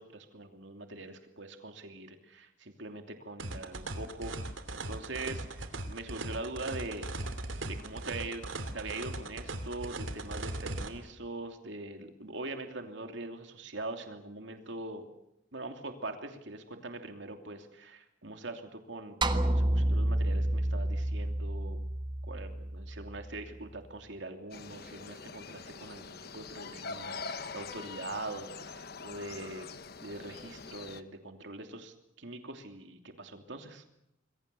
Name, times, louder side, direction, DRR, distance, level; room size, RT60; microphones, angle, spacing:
voice 1, 0.0-4.3 4.7-7.1 7.7-8.4 8.7-15.0 15.5-21.8 22.2-29.7 30.0-33.8, right 2 dB, 65° right, 5 dB, 2.9 m, -42 dB
sound 1, 3.4-10.9, right 2 dB, 80° right, 2.7 m, -39 dB
sound 2, 19.2-23.6, right 1 dB, 25° right, 1.4 m, -30 dB
sound 3, 24.5-31.0, left 4 dB, 55° left, 1.2 m, -44 dB
27.0 x 22.5 x 6.9 m, 0.83 s
head